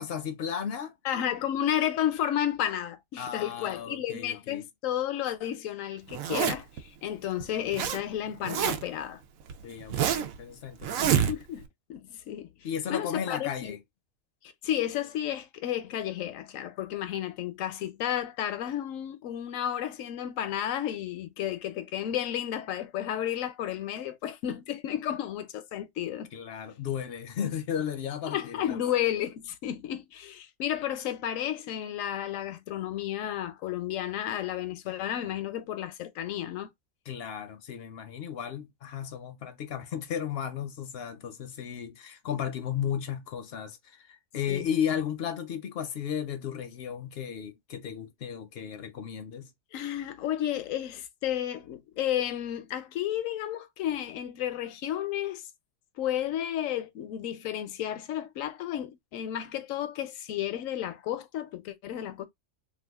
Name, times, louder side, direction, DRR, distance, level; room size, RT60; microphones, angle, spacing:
voice 1, 0.0-0.9 3.2-4.6 9.6-11.3 12.6-13.8 26.3-28.8 37.1-49.5, left 8 dB, 60° left, 0.7 m, -34 dB
voice 2, 1.0-9.2 11.0-11.6 11.9-12.5 12.9-13.8 14.6-26.3 27.4-27.5 28.3-36.7 44.5-44.7 49.7-55.4 56.0-62.3, left 11 dB, 80° left, 1.0 m, -32 dB
Zipper (clothing), 6.1-6.8 7.4-8.0 8.3-9.0 9.5-10.4 10.8-11.7, right 9 dB, 90° right, 1.0 m, -27 dB
2.7 x 2.4 x 3.4 m
omnidirectional pair, 1.4 m